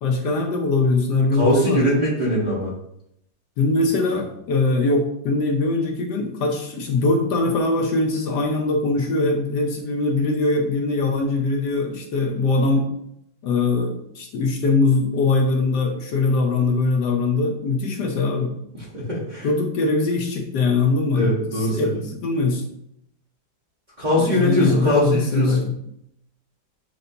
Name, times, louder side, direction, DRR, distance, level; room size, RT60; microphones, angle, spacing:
voice 1, 0.0-2.0 3.6-12.9 13.4-18.5 19.4-22.6 24.1-25.7, left 3 dB, 70° left, 2 dB, 1.2 m, -22 dB
voice 2, 1.3-2.7 18.7-19.5 21.1-22.0 24.0-25.6, equal, 35° right, -8 dB, 0.8 m, -21 dB
6.6 x 2.5 x 2.6 m, 0.75 s
omnidirectional pair, 2.0 m